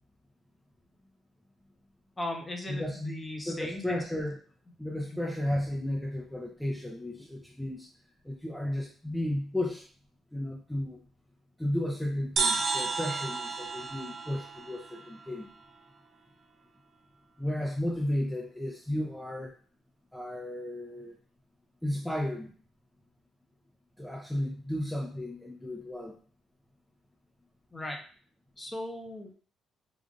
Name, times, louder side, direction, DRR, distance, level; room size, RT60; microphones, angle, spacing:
voice 1, 2.2-4.0 27.7-28.0 28.6-29.3, left 1 dB, 20° left, 2 dB, 0.9 m, -37 dB
voice 2, 2.7-3.0 3.5-4.4 4.8-7.9 8.2-9.8 10.3-11.0 11.6-15.5 17.4-19.5 20.1-21.1 21.8-22.5 24.0-26.2, left 1 dB, 5° left, -1 dB, 0.6 m, -33 dB
sound 1, 12.4-15.9, right 4 dB, 60° right, 0.5 m, -33 dB
5.1 x 2.5 x 2.5 m, 0.42 s
cardioid pair, 90°, 0 cm